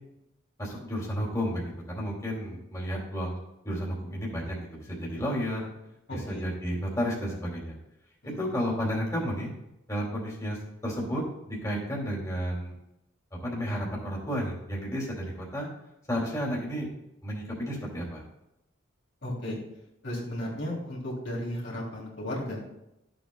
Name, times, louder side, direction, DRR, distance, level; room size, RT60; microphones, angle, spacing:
voice 1, 0.6-3.4 3.6-5.7 6.1-7.8 8.2-9.5 9.9-10.6 10.8-12.8 13.4-15.7 16.1-16.9 17.2-18.2, equal, 15° left, -4 dB, 2.4 m, -32 dB
voice 2, 6.1-6.5 8.2-8.4 19.2-19.6 20.0-22.6, left 1 dB, 60° left, -4 dB, 2.7 m, -34 dB
13.5 x 7.8 x 2.2 m, 0.87 s
head